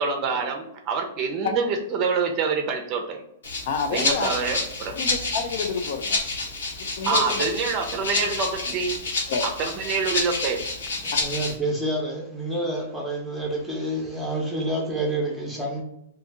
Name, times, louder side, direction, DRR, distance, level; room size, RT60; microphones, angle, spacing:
voice 1, 0.0-3.2 3.9-5.0 7.0-8.9 9.4-10.6, right 5 dB, 30° right, 4 dB, 0.6 m, -26 dB
Rattle (instrument), 3.4-11.5, left 3 dB, 85° left, 1.2 m, -29 dB
voice 2, 3.7-4.3 5.0-6.2 7.0-7.4 9.3-9.5, left 5 dB, 50° left, 6 dB, 0.5 m, -28 dB
voice 3, 11.0-15.8, right 1 dB, ahead, -2 dB, 0.8 m, -28 dB
2.7 x 2.7 x 3.5 m, 0.80 s
hypercardioid pair, 155°, 0 cm